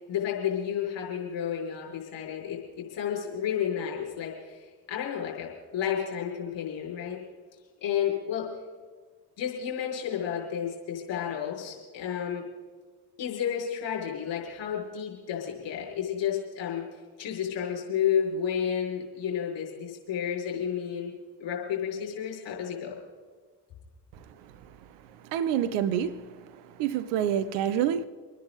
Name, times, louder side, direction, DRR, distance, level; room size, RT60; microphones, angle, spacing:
voice 1, 0.0-7.2 7.8-8.5 9.4-12.4 13.2-16.8 17.2-21.1 21.4-22.9, left 8 dB, 60° left, 6.1 m, -31 dB
voice 2, 25.2-28.1, right 9 dB, 75° right, 1.0 m, -28 dB
27.0 x 10.0 x 4.1 m
hypercardioid pair, 40°, 48 cm